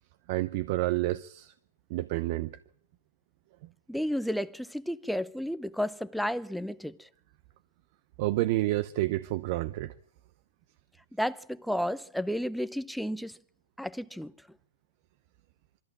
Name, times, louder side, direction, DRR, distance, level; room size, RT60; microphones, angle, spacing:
voice 1, 0.3-1.5 1.9-2.6 8.2-9.9, right 17 dB, 55° right, 0.7 m, -29 dB
voice 2, 3.9-7.1 11.1-13.4 13.8-14.3, equal, ahead, 0.7 m, -32 dB
23.0 x 13.5 x 8.8 m
hypercardioid pair, 115°, 0 cm